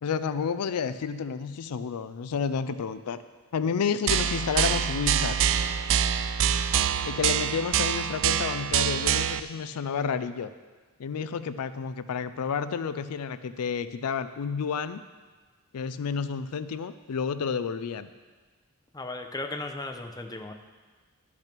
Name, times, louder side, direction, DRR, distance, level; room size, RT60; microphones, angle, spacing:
voice 1, 0.0-3.2 3.5-5.3 7.1-10.5 11.0-15.0 15.7-18.1, left 6 dB, 85° left, 13 dB, 0.4 m, -30 dB
sound 1, 4.1-9.4, right 9 dB, 60° right, 0.4 m, -25 dB
voice 2, 18.9-20.5, left 2 dB, 15° left, 5 dB, 0.7 m, -36 dB
12.0 x 6.0 x 6.0 m, 1.4 s
head